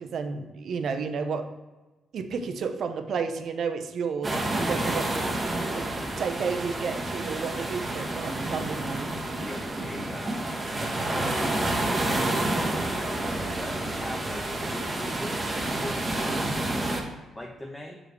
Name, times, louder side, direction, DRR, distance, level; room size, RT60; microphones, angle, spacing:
voice 1, 0.0-1.5 2.1-5.1 5.7-9.2 11.0-11.1, right 5 dB, 60° right, 7 dB, 0.6 m, -32 dB
sound 1, 4.2-17.0, right 1 dB, 25° right, 1.0 m, -29 dB
voice 2, 9.4-10.6 10.9-11.6 11.9-16.1 17.4-18.0, left 1 dB, 10° left, 2 dB, 0.6 m, -39 dB
6.5 x 4.9 x 3.1 m, 1.1 s
cardioid pair, 90°, 0 cm